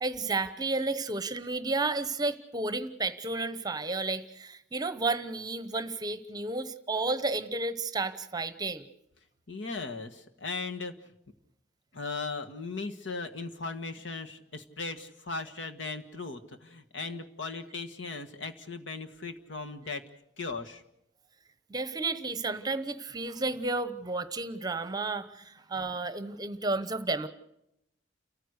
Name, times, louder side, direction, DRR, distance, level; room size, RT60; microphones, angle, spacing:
voice 1, 0.0-8.9 21.7-27.3, right 3 dB, 20° right, 13 dB, 0.9 m, -32 dB
voice 2, 9.5-10.9 11.9-20.0 20.4-20.8, left 3 dB, 80° left, 6 dB, 1.7 m, -37 dB
30.0 x 14.5 x 6.6 m, 0.83 s
head